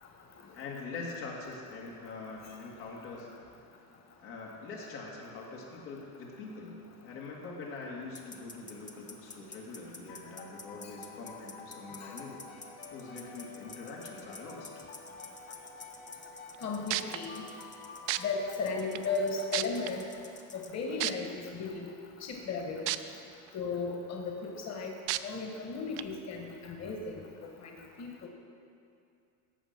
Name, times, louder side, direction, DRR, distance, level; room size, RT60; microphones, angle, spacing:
voice 1, 0.5-3.3 4.2-14.7, left 3 dB, 85° left, -3 dB, 2.6 m, -44 dB
sound 1, 8.1-20.7, left 3 dB, 15° left, 1.0 m, -51 dB
sound 2, 10.1-20.5, left 4 dB, 65° left, 1.5 m, -50 dB
sound 3, 16.5-16.6 16.9-17.2 18.1-18.2 19.0-19.1 19.5-19.9 21.0-21.1 22.9-23.0 23.5-23.6 25.1-25.2 26.0-26.1, right 17 dB, 60° right, 0.6 m, -30 dB
voice 2, 16.6-17.4 18.2-20.0 20.5-21.8 22.2-22.9 23.5-24.9 25.2-28.3, left 4 dB, 35° left, 2 dB, 1.4 m, -35 dB
14.5 x 5.4 x 6.0 m, 2.5 s
supercardioid pair, 95°, 47 cm